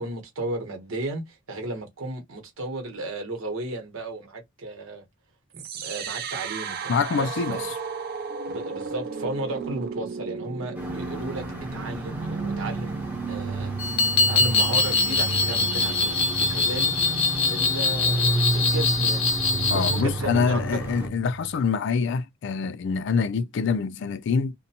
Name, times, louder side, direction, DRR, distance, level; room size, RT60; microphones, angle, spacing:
voice 1, 0.0-5.0 5.5-7.7 8.5-11.4 11.7-12.9 13.3-13.7 14.3-16.9 17.4-19.3 19.7-20.8 23.0-23.1, right 2 dB, 90° right, 1.0 m, -34 dB
sound 1, 5.5-21.6, right 3 dB, 50° right, 0.4 m, -32 dB
voice 2, 6.9-7.6 19.7-24.5, left 5 dB, 60° left, 0.3 m, -25 dB
sound 2, 10.7-21.1, equal, 10° right, 0.7 m, -36 dB
sound 3, 13.8-20.0, left 3 dB, 85° left, 0.7 m, -23 dB
2.5 x 2.2 x 2.7 m
head